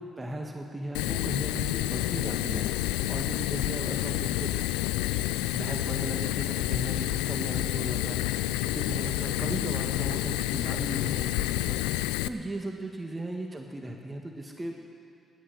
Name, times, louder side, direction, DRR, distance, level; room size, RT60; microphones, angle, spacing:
voice 1, 0.0-4.6 5.5-11.8 12.2-14.7, right 1 dB, 25° right, 2 dB, 1.7 m, -37 dB
Fire, 0.9-12.3, left 15 dB, 80° left, 0.3 m, -29 dB
14.0 x 11.5 x 7.8 m, 2.4 s
hypercardioid pair, 40°, 0 cm